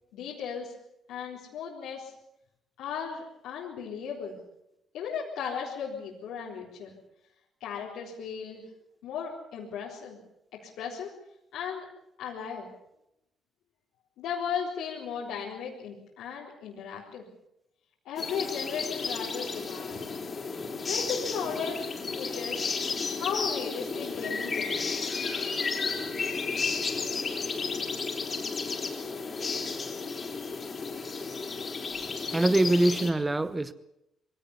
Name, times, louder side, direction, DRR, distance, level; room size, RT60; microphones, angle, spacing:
voice 1, 0.1-0.7 1.1-2.1 2.8-4.4 4.9-6.9 7.6-8.6 9.0-10.2 10.6-11.1 11.5-11.9 12.2-12.7 14.2-17.3 18.1-20.0 20.9-22.7 23.1-24.9, left 7 dB, 90° left, 4.0 m, -36 dB
sound 1, 18.2-33.1, left 4 dB, 40° left, 4.1 m, -33 dB
voice 2, 32.3-33.7, right 2 dB, 15° right, 1.2 m, -24 dB
23.0 x 17.5 x 8.2 m
cardioid pair, 90°, 0 cm